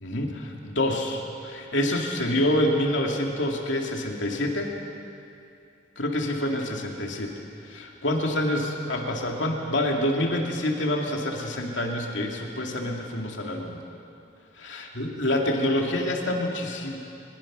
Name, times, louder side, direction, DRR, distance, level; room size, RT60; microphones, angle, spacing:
voice 1, 0.0-4.7 6.0-7.3 7.6-13.8 14.6-17.0, left 1 dB, 90° left, 0 dB, 2.5 m, -27 dB
22.5 x 21.5 x 6.2 m, 2.6 s
head